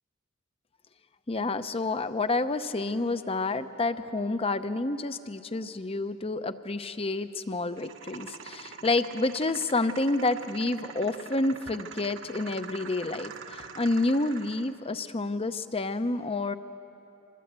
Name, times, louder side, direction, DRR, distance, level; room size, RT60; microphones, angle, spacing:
voice 1, 1.3-16.5, left 2 dB, 25° left, 11 dB, 0.7 m, -29 dB
sound 1, 7.8-14.8, right 6 dB, 60° right, 1.3 m, -44 dB
25.0 x 21.0 x 8.2 m, 3.0 s
head